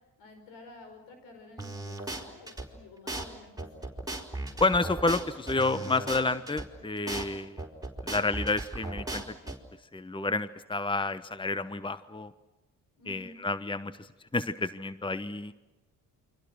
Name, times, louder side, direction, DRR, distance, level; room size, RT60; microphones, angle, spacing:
voice 1, 0.2-3.8 13.0-13.4, left 2 dB, 80° left, 6 dB, 5.3 m, -51 dB
sound 1, 1.6-2.7 3.1-3.3 3.6-6.7 7.1-7.3 7.6-9.6, right 2 dB, 10° right, 4.8 m, -36 dB
voice 2, 4.6-7.6 8.1-9.5 9.9-12.3 13.1-14.1 14.3-15.5, left 3 dB, 10° left, 14 dB, 1.2 m, -30 dB
29.0 x 24.5 x 6.4 m, 1.0 s
hypercardioid pair, 45°, 45 cm